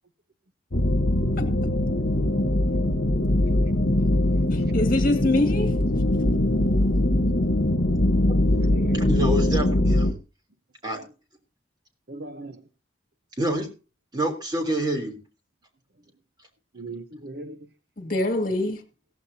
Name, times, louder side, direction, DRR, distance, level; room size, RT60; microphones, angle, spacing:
sound 1, 0.7-10.1, left 1 dB, 70° left, 1.3 m, -22 dB
voice 1, 1.4-1.7 4.0-4.1 4.5-5.7 18.0-18.8, left 2 dB, 45° left, 2.3 m, -25 dB
voice 2, 2.8-4.3 4.7-4.8 5.0-5.2 7.2-7.4 8.4-9.2 10.9-11.0 12.1-12.7 16.7-17.7, right 2 dB, 55° right, 1.0 m, -41 dB
voice 3, 8.9-10.2 10.8-11.0 13.4-13.7 14.1-15.2, right 1 dB, 20° right, 3.3 m, -27 dB
16.5 x 14.5 x 2.8 m
head